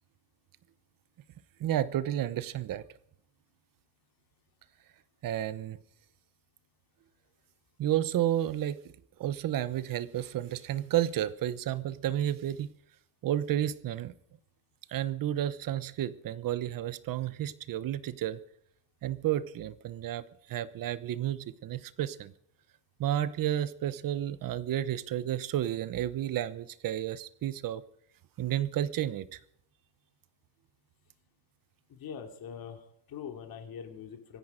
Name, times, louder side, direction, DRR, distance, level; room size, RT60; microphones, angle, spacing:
voice 1, 1.6-2.8 5.2-5.8 7.8-8.8 9.2-12.7 13.2-14.1 14.9-18.4 19.0-22.3 23.0-27.8 28.4-29.4, right 12 dB, 50° right, 1.0 m, -31 dB
voice 2, 31.9-34.4, left 7 dB, 50° left, 3.1 m, -43 dB
25.0 x 10.5 x 5.1 m
cardioid pair, 165°, 44 cm